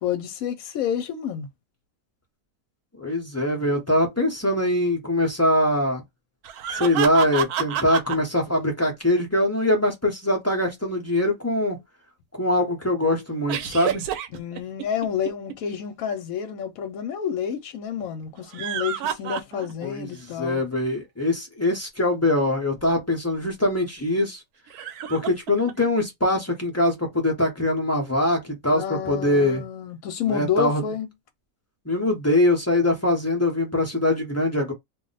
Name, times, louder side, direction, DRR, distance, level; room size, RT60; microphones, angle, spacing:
voice 1, 0.0-1.5 14.3-20.6 28.7-31.1, left 8 dB, 70° left, 1.0 m, -29 dB
voice 2, 3.0-6.0 6.7-11.8 12.4-14.0 19.8-20.1 20.4-24.4 25.1-29.6 30.3-30.8 31.9-34.7, left 1 dB, 15° left, 0.5 m, -23 dB
sound 1, 6.4-8.2 13.5-15.5 18.3-19.9 20.3-20.4 22.7-22.8 24.7-25.7, right 9 dB, 85° right, 1.1 m, -29 dB
2.6 x 2.1 x 3.8 m
omnidirectional pair, 1.6 m